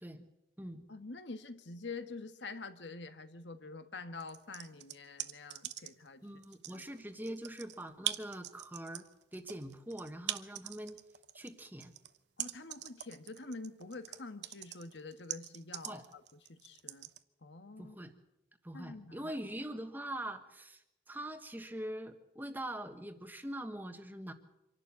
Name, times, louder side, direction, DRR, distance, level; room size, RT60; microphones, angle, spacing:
voice 1, 0.9-6.2 6.7-6.8 12.4-16.2 16.5-17.1 17.4-18.0 18.7-19.3, left 3 dB, 85° left, 9 dB, 1.5 m, -46 dB
sound 1, 4.2-6.1 6.4-17.2, right 12 dB, 80° right, 0.9 m, -42 dB
voice 2, 6.2-9.0 9.3-11.0 11.3-11.9 15.9-16.0 17.8-18.1 18.6-24.3, right 1 dB, 10° right, 7 dB, 1.3 m, -43 dB
25.5 x 11.5 x 8.6 m, 0.90 s
head